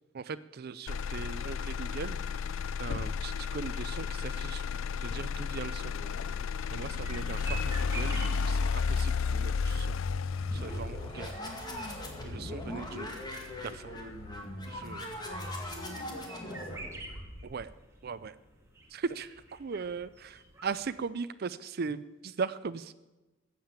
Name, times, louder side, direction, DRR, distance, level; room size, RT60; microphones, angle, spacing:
voice 1, 0.1-2.2 2.8-4.6 5.0-5.9 6.7-9.9 10.5-11.3 12.2-13.1 13.6-14.0 14.7-15.1 17.4-17.7 18.0-18.4 18.9-22.9, right 5 dB, 50° right, 12 dB, 0.4 m, -39 dB
Motor vehicle (road), 0.9-14.9 15.3-15.9, left 5 dB, 80° left, 0.4 m, -33 dB
sound 1, 5.2-21.0, right 2 dB, 15° right, 2.0 m, -50 dB
voice 2, 5.9-6.3 12.9-13.1 15.2-16.9, left 1 dB, 45° left, 0 dB, 3.6 m, -48 dB
sound 2, 10.3-17.7, left 1 dB, 20° left, 2.1 m, -40 dB
14.5 x 7.5 x 8.7 m, 1.1 s
head